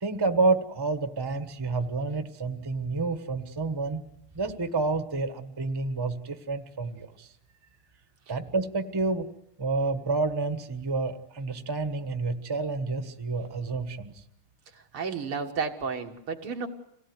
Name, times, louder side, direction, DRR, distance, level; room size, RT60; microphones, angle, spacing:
voice 1, 0.0-4.0 4.3-7.3 8.3-9.3 9.6-14.1, right 3 dB, 15° right, 8 dB, 1.0 m, -29 dB
voice 2, 14.9-16.7, right 5 dB, 85° right, 3 dB, 2.7 m, -32 dB
26.5 x 18.0 x 9.5 m, 0.85 s
omnidirectional pair, 2.3 m